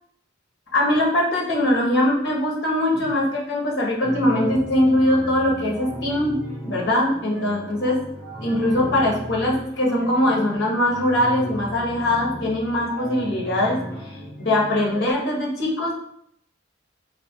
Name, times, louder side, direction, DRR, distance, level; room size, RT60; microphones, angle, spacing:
voice 1, 0.7-6.4 6.6-8.0 8.4-14.0 14.4-15.9, left 1 dB, 55° left, -4 dB, 1.2 m, -21 dB
sound 1, 4.0-15.1, right 1 dB, 5° right, 1.1 m, -36 dB
4.2 x 2.8 x 2.9 m, 0.70 s
head